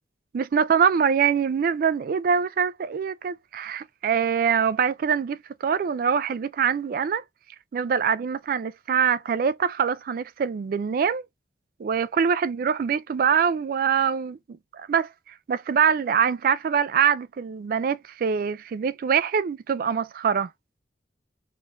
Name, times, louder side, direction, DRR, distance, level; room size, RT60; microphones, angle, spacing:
voice 1, 0.3-7.2 7.7-11.3 11.8-20.5, right 7 dB, 50° right, 0.3 m, -24 dB
3.7 x 2.5 x 3.4 m
head